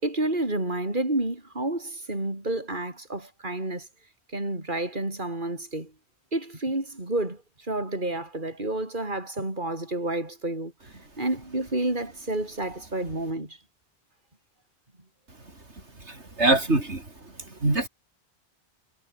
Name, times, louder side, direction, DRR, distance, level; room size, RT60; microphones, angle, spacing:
voice 1, 0.0-3.9 4.3-5.9 6.3-7.4 7.7-10.7 11.2-13.6, right 2 dB, 45° right, 5.2 m, -30 dB
voice 2, 16.0-17.0 17.6-17.9, right 2 dB, 80° right, 4.8 m, -23 dB
omnidirectional pair, 1.1 m